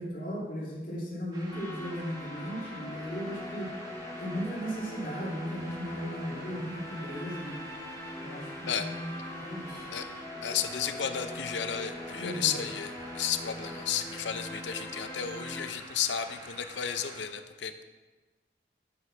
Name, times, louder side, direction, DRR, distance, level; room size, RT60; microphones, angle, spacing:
voice 1, 0.0-3.7 4.2-7.6 8.2-9.1 9.4-9.9 12.2-12.6, equal, 50° left, -6 dB, 2.6 m, -36 dB
sound 1, 1.3-17.2, right 1 dB, 20° right, 1.0 m, -47 dB
sound 2, 1.5-15.7, left 1 dB, 15° left, 0.6 m, -42 dB
voice 2, 10.4-17.8, left 8 dB, 85° left, 9 dB, 0.6 m, -33 dB
9.6 x 4.7 x 6.0 m, 1.3 s
head